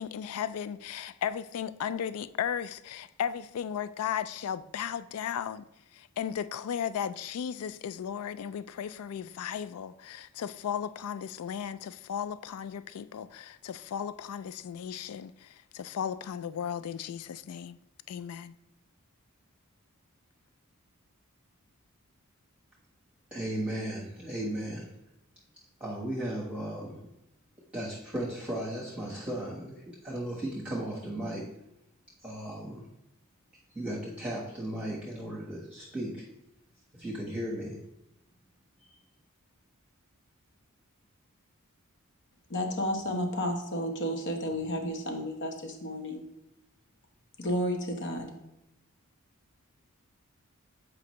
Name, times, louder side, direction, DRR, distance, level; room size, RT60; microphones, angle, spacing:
voice 1, 0.0-5.6 5.9-17.8 18.1-18.5, left 8 dB, 75° left, 0.3 m, -35 dB
voice 2, 23.3-24.9 25.8-26.9 27.7-31.5 32.2-32.8 33.7-36.2 37.0-37.8 38.8-38.9, right 1 dB, 5° right, 1.3 m, -35 dB
voice 3, 42.5-46.2 47.4-48.3, equal, 55° left, 1.0 m, -32 dB
7.7 x 5.0 x 3.1 m
head